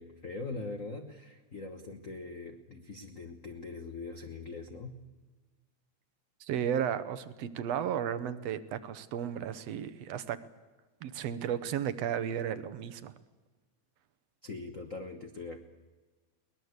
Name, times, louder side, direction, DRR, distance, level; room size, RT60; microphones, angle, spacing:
voice 1, 0.0-5.0 14.4-15.6, left 3 dB, 65° left, 6 dB, 0.8 m, -42 dB
voice 2, 6.4-10.4 11.0-13.1, right 9 dB, 70° right, 14 dB, 1.8 m, -34 dB
22.5 x 19.5 x 8.1 m, 1.3 s
omnidirectional pair, 3.5 m